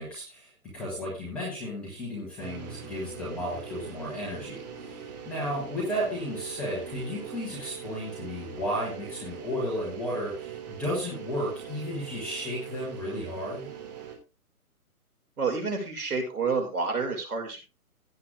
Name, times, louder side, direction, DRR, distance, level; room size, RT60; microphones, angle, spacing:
voice 1, 0.0-13.7, equal, 5° left, -4 dB, 0.7 m, -33 dB
sound 1, 2.4-14.2, right 8 dB, 30° right, 3.4 m, -42 dB
voice 2, 15.4-17.6, right 4 dB, 75° right, 3 dB, 6.3 m, -29 dB
16.5 x 7.4 x 3.6 m, 0.29 s
hypercardioid pair, 160°, 45 cm